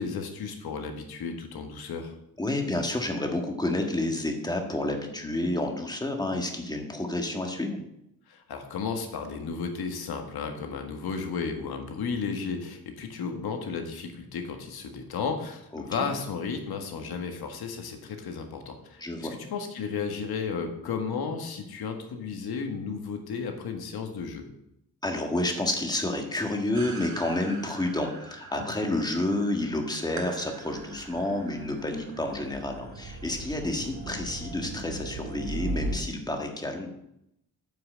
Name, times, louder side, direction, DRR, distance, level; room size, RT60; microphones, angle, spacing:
voice 1, 0.0-2.1 8.3-24.4, left 5 dB, 85° left, 5 dB, 1.8 m, -33 dB
voice 2, 2.4-7.8 15.7-16.1 19.0-19.3 25.0-36.9, left 1 dB, 10° left, 3 dB, 1.6 m, -30 dB
sound 1, 26.7-36.0, right 2 dB, 50° right, 1.9 m, -39 dB
9.3 x 5.9 x 7.6 m, 0.81 s
wide cardioid pair, 150°, 37 cm